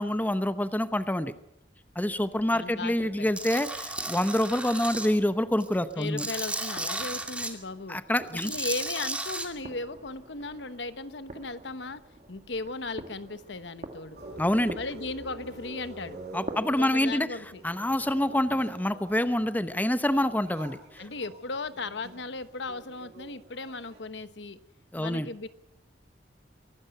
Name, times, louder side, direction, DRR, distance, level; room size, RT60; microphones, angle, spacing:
voice 1, 0.0-1.3 2.0-6.3 7.9-8.5 14.4-14.8 16.3-17.4 17.6-20.8 24.9-25.3, left 1 dB, 10° left, 11 dB, 0.8 m, -26 dB
sound 1, 1.8-17.0, right 1 dB, 45° right, 2.0 m, -48 dB
voice 2, 2.5-3.3 5.9-8.0 8.4-12.0 12.3-14.2 14.7-16.2 16.8-17.6 21.0-24.6 25.0-25.5, left 3 dB, 75° left, 12 dB, 1.1 m, -36 dB
Tools, 3.4-5.1 5.5-7.5 8.3-9.5, right 2 dB, 5° right, 2.4 m, -34 dB
sound 2, 14.2-24.0, right 1 dB, 60° right, 6.4 m, -47 dB
24.0 x 12.5 x 9.1 m, 0.84 s
head